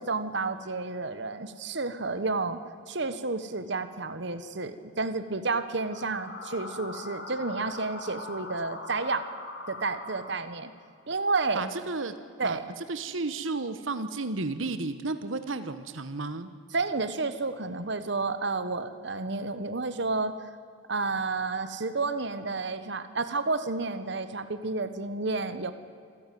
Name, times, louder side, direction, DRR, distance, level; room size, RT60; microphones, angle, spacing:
voice 1, 0.0-2.6 2.9-9.2 9.7-10.7 11.1-11.7 12.4-12.7 16.7-20.3 20.9-25.7, right 3 dB, 60° right, 11 dB, 1.3 m, -31 dB
sound 1, 5.7-10.8, left 2 dB, 65° left, 4.3 m, -41 dB
voice 2, 11.5-12.1 12.4-12.6 12.9-16.5, right 3 dB, 80° right, 11 dB, 1.3 m, -32 dB
27.0 x 15.0 x 9.4 m, 2.4 s
head